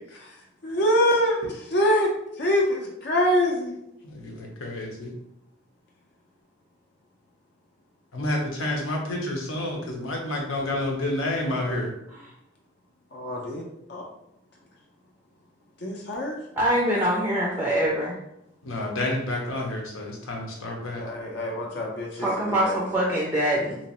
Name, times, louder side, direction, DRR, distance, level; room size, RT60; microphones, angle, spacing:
voice 1, 0.6-2.1 2.4-3.8 13.1-13.6 13.9-14.0 15.8-16.4 21.0-22.8, equal, 55° left, -1 dB, 0.6 m, -25 dB
voice 2, 4.0-5.1 8.1-11.9 18.6-21.0, left 1 dB, 85° left, 0 dB, 0.9 m, -29 dB
voice 3, 16.6-18.2 22.2-23.8, right 1 dB, 10° right, -4 dB, 0.4 m, -24 dB
3.0 x 2.9 x 2.9 m, 0.79 s
head